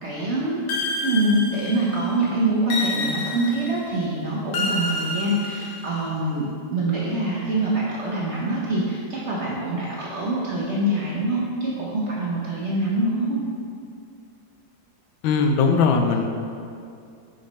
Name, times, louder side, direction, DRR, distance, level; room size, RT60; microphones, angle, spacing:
voice 1, 0.0-0.7 1.0-6.4 6.7-13.4, right 1 dB, 50° right, -6 dB, 0.9 m, -24 dB
sound 1, 0.7-2.0 2.7-3.8 4.5-6.1, left 2 dB, 65° left, 1.0 m, -29 dB
voice 2, 15.2-16.3, left 5 dB, 85° left, 5 dB, 1.4 m, -19 dB
6.4 x 4.2 x 4.1 m, 2.4 s
omnidirectional pair, 2.1 m